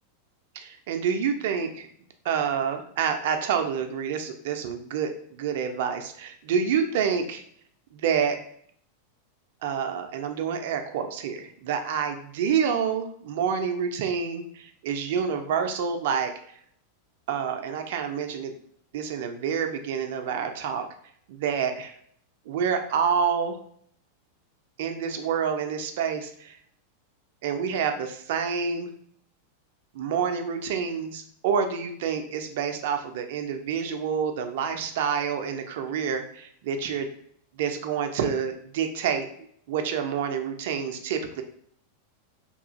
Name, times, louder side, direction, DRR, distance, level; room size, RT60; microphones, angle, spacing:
voice 1, 0.5-1.9 2.2-7.4 7.9-8.4 9.6-16.3 17.3-18.5 18.9-20.9 21.3-21.9 22.5-23.6 24.8-26.6 27.4-28.9 29.9-37.1 37.6-39.3 39.7-41.4, right 7 dB, 55° right, 6 dB, 0.4 m, -28 dB
3.0 x 2.4 x 2.6 m, 0.64 s
figure-of-eight pair, 90°, 0 cm